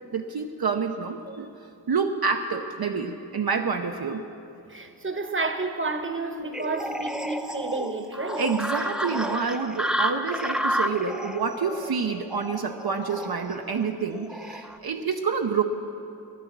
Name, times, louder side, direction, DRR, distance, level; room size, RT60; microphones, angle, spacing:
voice 1, 0.1-1.5 1.9-4.2 8.4-15.6, right 5 dB, 65° right, 0.7 m, -28 dB
voice 2, 4.7-8.4, right 3 dB, 30° right, 1.0 m, -31 dB
sound 1, 6.5-14.8, equal, ahead, 0.6 m, -31 dB
13.0 x 10.0 x 7.3 m
wide cardioid pair, 70°, 41 cm